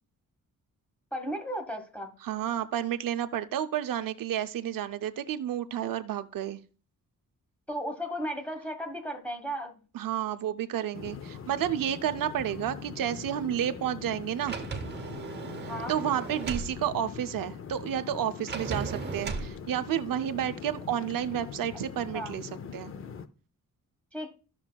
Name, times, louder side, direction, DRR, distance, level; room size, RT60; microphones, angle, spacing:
voice 1, 1.1-2.1 7.7-9.7 15.7-16.0 22.1-22.3 24.1-24.3, equal, 5° left, 1.2 m, -35 dB
voice 2, 2.2-6.6 9.9-14.6 15.9-22.9, right 10 dB, 80° right, 0.6 m, -31 dB
sound 1, 10.9-23.3, left 7 dB, 40° left, 0.5 m, -42 dB
Sliding door, 14.4-16.7 18.5-19.5, right 5 dB, 30° right, 0.8 m, -36 dB
14.0 x 6.0 x 2.2 m
wide cardioid pair, 175°, 33 cm